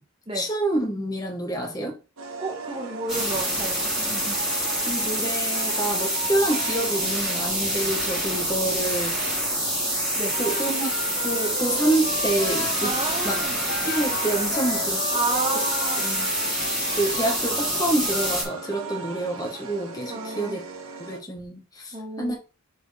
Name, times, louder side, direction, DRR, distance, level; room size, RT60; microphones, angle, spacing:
voice 1, 0.3-1.9 4.8-9.4 10.4-10.9 11.2-12.9 13.2-13.4 13.9-15.1 16.0-16.3 17.0-20.6 21.0-22.4, right 1 dB, 15° left, 1.5 m, -27 dB
sound 1, 2.2-21.2, right 4 dB, 75° right, 1.3 m, -38 dB
voice 2, 2.4-4.4 10.2-10.4 12.8-13.6 15.1-16.0 16.9-17.1 20.1-20.6 21.9-22.4, right 2 dB, 25° right, 1.7 m, -31 dB
sound 2, 3.1-18.4, equal, 5° right, 2.5 m, -26 dB
Wind instrument woodwind instrument, 10.3-17.1, left 2 dB, 60° left, 2.2 m, -36 dB
7.3 x 4.5 x 3.5 m
head